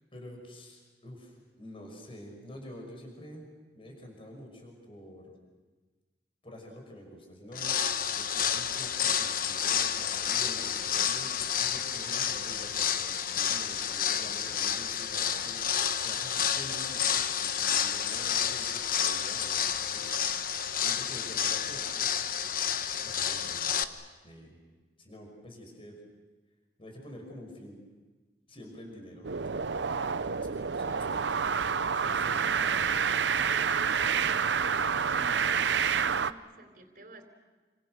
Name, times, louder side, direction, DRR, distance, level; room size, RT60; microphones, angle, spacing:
voice 1, 0.1-3.5 3.7-5.4 6.4-7.8 8.1-20.3 20.8-22.1 23.0-24.6 25.0-26.0 26.8-27.8 28.5-29.8 30.1-33.2, equal, 30° left, 2 dB, 6.0 m, -48 dB
sound 1, 7.5-23.8, left 8 dB, 55° left, 1.1 m, -30 dB
sound 2, 29.2-36.3, right 6 dB, 90° right, 0.7 m, -28 dB
voice 2, 32.4-37.2, right 1 dB, 55° right, 3 dB, 3.6 m, -49 dB
29.0 x 26.5 x 6.6 m, 1.3 s
head